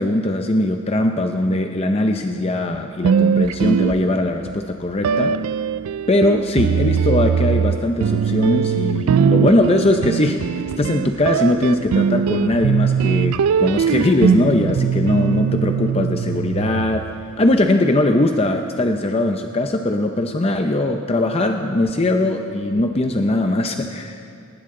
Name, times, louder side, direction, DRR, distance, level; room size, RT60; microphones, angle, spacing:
voice 1, 0.0-5.3 6.1-10.4 10.8-17.0 17.4-24.2, left 1 dB, 30° left, 5 dB, 0.6 m, -20 dB
sound 1, 3.0-4.5 5.0-17.3, right 7 dB, 90° right, 0.3 m, -20 dB
20.0 x 19.0 x 3.8 m, 2.4 s
head